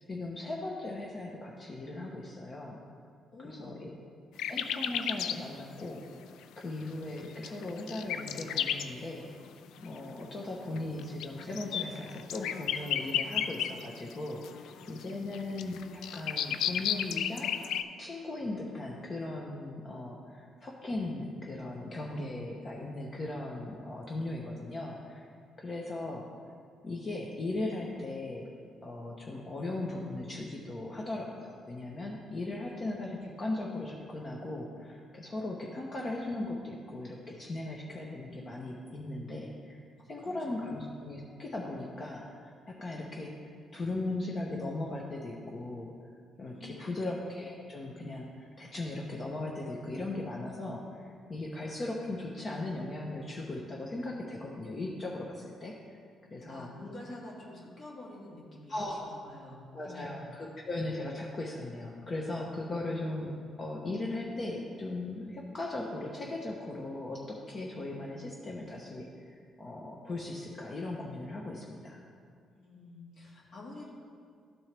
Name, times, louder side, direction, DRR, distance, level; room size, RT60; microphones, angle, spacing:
voice 1, 0.1-2.8 3.4-3.9 4.5-6.0 6.6-9.3 9.8-17.5 18.0-25.3 25.6-26.2 26.8-28.5 28.8-39.8 40.1-45.9 46.4-55.8 56.3-56.7 58.7-59.1 59.7-63.3 63.6-72.0, left 2 dB, 40° left, -1 dB, 0.8 m, -38 dB
voice 2, 3.3-3.9 40.0-40.6 46.5-47.0 56.3-60.3 72.5-73.9, left 2 dB, 55° left, -4 dB, 1.8 m, -48 dB
sound 1, 4.4-5.4 5.8-5.9 7.2-8.9 9.8-10.0 10.8-14.1 14.4-17.8, left 9 dB, 85° left, 0.3 m, -33 dB
12.5 x 4.4 x 3.3 m, 2.2 s
cardioid pair, 90°, 0 cm